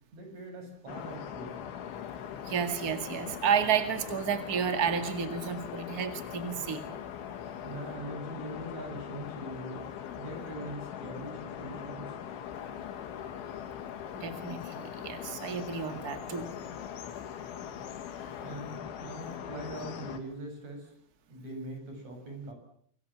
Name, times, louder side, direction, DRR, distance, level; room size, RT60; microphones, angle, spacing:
voice 1, 0.1-1.7 7.6-9.9 10.2-12.1 17.8-18.0 18.3-20.9 21.3-22.5, right 1 dB, 35° right, 4 dB, 8.2 m, -42 dB
sound 1, 0.9-20.2, left 9 dB, 75° left, 4.3 m, -41 dB
voice 2, 2.4-6.9 14.1-16.5, right 7 dB, 85° right, 8 dB, 0.8 m, -31 dB
25.5 x 23.0 x 7.4 m, 0.64 s
omnidirectional pair, 5.5 m